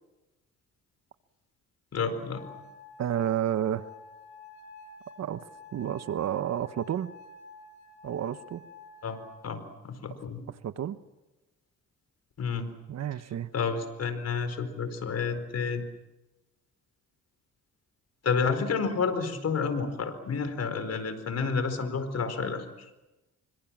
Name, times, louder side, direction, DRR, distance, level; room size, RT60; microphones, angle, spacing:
voice 1, 1.9-2.4 9.0-9.2 9.4-10.4 12.4-12.7 13.5-15.9 18.2-22.6, left 5 dB, 55° left, 10 dB, 4.6 m, -30 dB
sound 1, 2.4-9.4, left 3 dB, 75° left, 6.9 m, -50 dB
voice 2, 3.0-3.9 5.2-5.4 5.7-7.1 8.0-8.6 10.5-11.0 12.9-13.5, right 10 dB, 60° right, 13 dB, 1.2 m, -30 dB
26.5 x 25.0 x 7.5 m, 1.0 s
cardioid pair, 90°, 30 cm